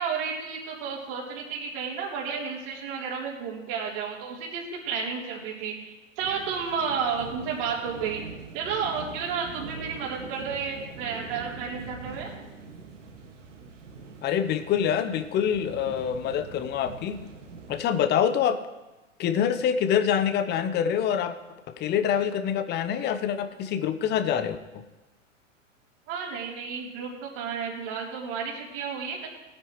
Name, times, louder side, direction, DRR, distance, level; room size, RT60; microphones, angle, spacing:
voice 1, 0.0-8.2 8.5-12.3 26.1-29.3, right 6 dB, 45° right, -3 dB, 3.7 m, -32 dB
sound 1, 6.2-18.0, right 4 dB, 70° right, 2.0 m, -43 dB
voice 2, 14.2-17.2 17.7-18.6 19.2-21.4 21.8-24.8, left 8 dB, 25° left, 11 dB, 0.9 m, -25 dB
19.5 x 9.9 x 3.2 m, 1.1 s
figure-of-eight pair, 105°, 39 cm